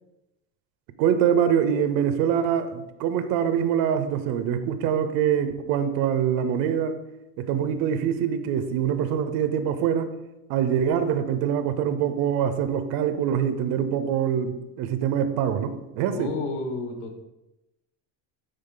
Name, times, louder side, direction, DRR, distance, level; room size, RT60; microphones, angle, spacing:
voice 1, 1.0-7.0 7.4-10.1 10.5-16.3, right 8 dB, 60° right, 10 dB, 0.7 m, -24 dB
voice 2, 16.1-17.2, left 3 dB, 50° left, 4 dB, 1.6 m, -31 dB
10.5 x 3.9 x 3.9 m, 0.93 s
cardioid pair, 145°, 40 cm